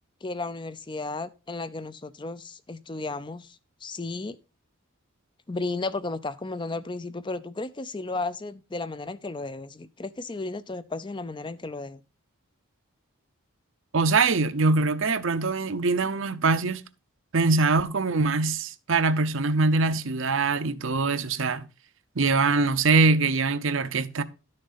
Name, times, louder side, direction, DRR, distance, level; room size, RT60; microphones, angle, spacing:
voice 1, 0.2-4.4 5.5-12.0, left 3 dB, 20° left, 0.5 m, -34 dB
voice 2, 13.9-16.8 17.3-21.7 22.2-24.2, right 3 dB, 65° right, 0.8 m, -23 dB
12.0 x 6.5 x 4.1 m
head